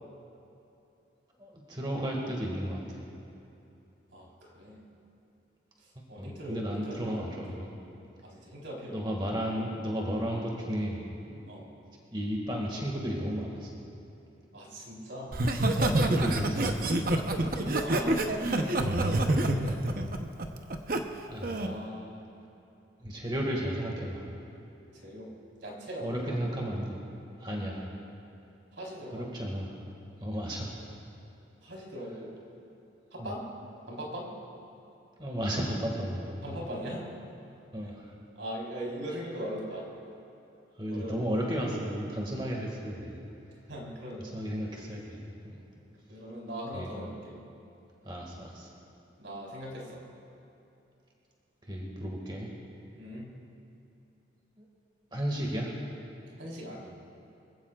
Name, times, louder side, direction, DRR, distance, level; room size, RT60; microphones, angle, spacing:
voice 1, 1.4-3.1 6.0-7.7 8.9-11.4 12.1-13.7 15.7-17.0 21.3-21.6 23.0-24.3 26.0-27.0 27.4-27.9 29.1-29.7 30.2-30.7 33.2-33.3 35.2-36.2 36.5-36.6 37.7-38.1 40.8-43.2 44.3-45.6 46.7-46.9 48.0-48.7 51.6-52.5 54.6-54.7 55.1-55.8, equal, 25° right, -2 dB, 1.9 m, -34 dB
voice 2, 4.1-4.8 5.8-7.3 8.2-9.0 11.5-11.7 14.5-15.4 17.8-19.8 21.5-22.3 24.9-25.3 25.6-26.4 28.7-29.3 31.6-32.4 33.1-33.4 33.9-34.3 36.4-37.0 38.3-39.9 40.9-41.4 43.7-44.4 46.1-47.4 49.2-50.0 52.9-53.3 56.4-57.0, equal, 85° right, -3 dB, 4.1 m, -40 dB
Laughter, 15.3-21.0 21.4-21.7, right 1 dB, 50° right, 0.9 m, -27 dB
25.0 x 16.5 x 2.4 m, 2.8 s
head